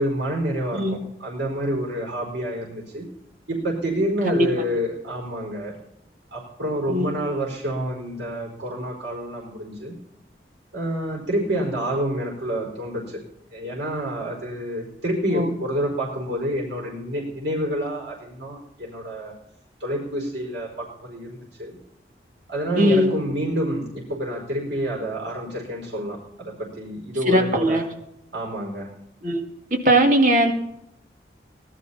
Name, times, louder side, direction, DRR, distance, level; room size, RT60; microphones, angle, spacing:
voice 1, 0.0-3.1 3.5-5.8 6.3-10.0 10.7-13.2 13.5-19.3 19.8-21.8 22.5-27.8 28.3-28.9, right 1 dB, 85° right, -2 dB, 5.1 m, -28 dB
voice 2, 22.8-23.2 27.3-27.8 29.2-29.4 29.8-30.5, equal, 45° right, 3 dB, 2.3 m, -19 dB
18.5 x 12.5 x 4.3 m, 0.77 s
head